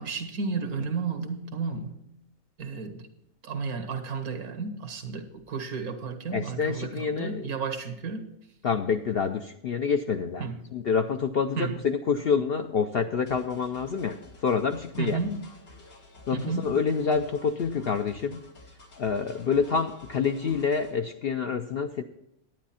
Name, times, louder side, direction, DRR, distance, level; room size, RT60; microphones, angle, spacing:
voice 1, 0.0-2.0 2.6-3.1 3.4-8.2 10.4-10.6 11.6-11.8 15.0-15.4 16.3-16.7, right 4 dB, 85° right, 7 dB, 1.7 m, -32 dB
voice 2, 6.3-7.4 8.6-10.4 10.7-15.2 16.3-18.4 19.0-22.0, left 6 dB, 60° left, 6 dB, 0.6 m, -27 dB
sound 1, 13.3-21.0, left 2 dB, 80° left, 2.3 m, -51 dB
10.5 x 9.5 x 4.2 m, 0.80 s
omnidirectional pair, 1.5 m